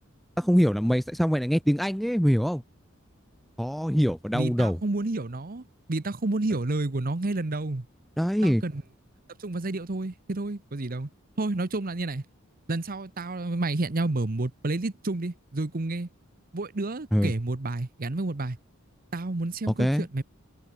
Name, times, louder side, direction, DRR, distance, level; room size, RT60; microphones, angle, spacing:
voice 1, 0.4-2.6 3.6-4.8 8.2-8.6 17.1-17.3 19.8-20.1, equal, ahead, 0.4 m, -23 dB
voice 2, 4.3-5.6 5.9-7.9 8.4-8.8 9.4-11.1 11.4-12.2 12.7-16.1 16.5-18.6 19.1-20.2, right 2 dB, 45° right, 1.0 m, -30 dB
head